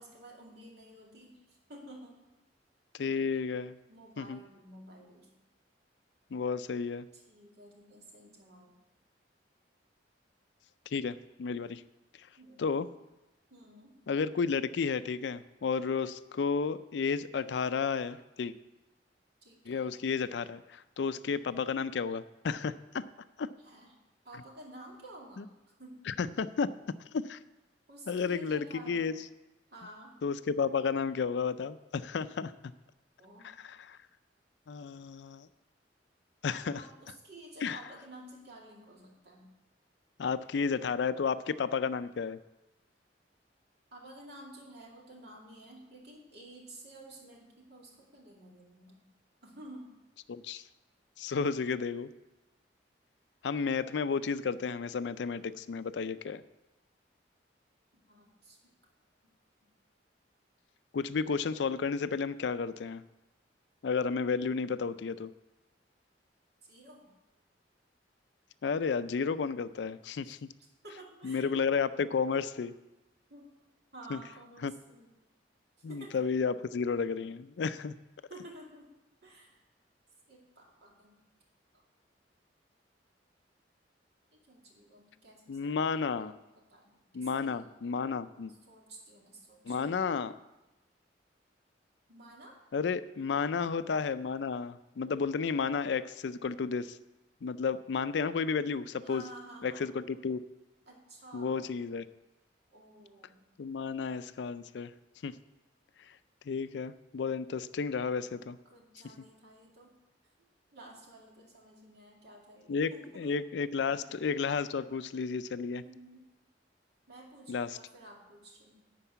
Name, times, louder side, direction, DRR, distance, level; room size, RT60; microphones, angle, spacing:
voice 1, 0.0-2.4 3.9-5.3 7.1-8.7 12.4-12.8 13.5-14.0 19.4-20.0 23.6-24.0 24.2-25.5 25.8-26.1 27.9-29.1 29.7-30.2 33.2-33.5 36.4-39.5 43.9-49.0 49.4-49.9 57.9-58.7 59.6-59.7 66.6-67.1 70.2-70.3 70.8-71.6 73.3-73.5 73.9-75.1 75.9-76.2 78.3-78.9 79.2-79.6 80.3-81.2 81.7-81.8 84.3-86.3 86.5-87.7 88.7-90.0 92.1-92.6 99.0-99.8 100.9-101.7 102.7-103.4 108.6-110.0 110.7-113.3 113.9-114.1 115.8-116.3 117.1-118.8, right 1 dB, 65° right, -1 dB, 2.4 m, -52 dB
voice 2, 2.9-3.8 4.2-4.4 6.3-7.1 10.9-11.8 12.6-12.9 14.1-18.5 19.7-23.0 23.4-23.5 25.4-25.5 26.1-26.7 27.1-27.4 28.1-29.1 30.2-32.5 33.4-33.8 34.7-35.5 36.4-36.8 37.6-37.8 40.2-42.4 50.3-50.6 51.2-52.1 53.4-56.4 60.9-63.0 63.8-65.3 68.6-70.4 71.2-72.7 74.1-74.2 74.6-74.7 75.8-77.9 85.5-86.3 87.1-88.5 89.7-90.3 92.7-97.0 97.4-99.2 99.6-100.4 101.3-102.0 103.6-104.9 105.2-105.4 106.5-108.6 112.7-115.8 117.5-117.8, left 5 dB, 70° left, 14 dB, 0.4 m, -32 dB
11.5 x 4.6 x 8.0 m, 1.0 s
head